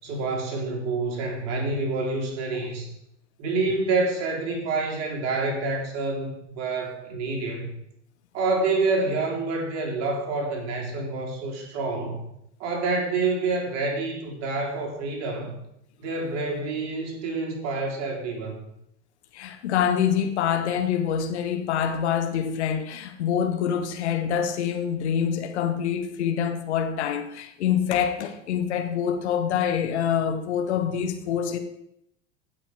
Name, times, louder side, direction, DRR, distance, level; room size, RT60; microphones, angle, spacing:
voice 1, 0.0-2.9 3.4-7.7 8.3-12.2 12.6-15.6 16.0-18.6, right 3 dB, 45° right, 0 dB, 3.7 m, -27 dB
voice 2, 19.3-31.6, left 8 dB, 65° left, 7 dB, 1.3 m, -26 dB
15.5 x 6.0 x 5.1 m, 0.78 s
figure-of-eight pair, 85°, 36 cm